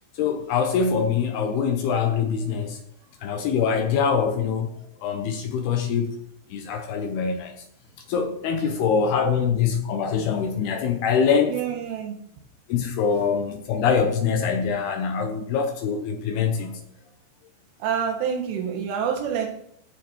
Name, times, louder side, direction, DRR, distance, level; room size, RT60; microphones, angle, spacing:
voice 1, 0.2-2.8 3.2-6.1 6.5-7.5 8.1-11.5 12.7-16.8, left 6 dB, 75° left, 2.5 m, -24 dB
voice 2, 11.5-12.2 17.8-19.5, right 8 dB, 90° right, 4.1 m, -27 dB
16.0 x 6.9 x 4.5 m
omnidirectional pair, 5.4 m